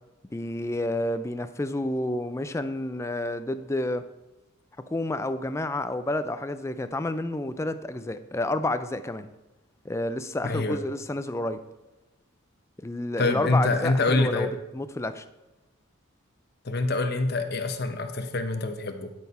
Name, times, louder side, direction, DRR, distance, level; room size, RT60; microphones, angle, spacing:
voice 1, 0.3-4.0 4.9-9.3 9.8-11.6 12.8-14.5 14.7-15.2, left 1 dB, 15° left, 11 dB, 0.4 m, -29 dB
voice 2, 10.4-10.8 13.2-14.5 16.6-19.1, left 2 dB, 50° left, 7 dB, 0.9 m, -26 dB
11.5 x 4.6 x 5.5 m, 1.1 s
head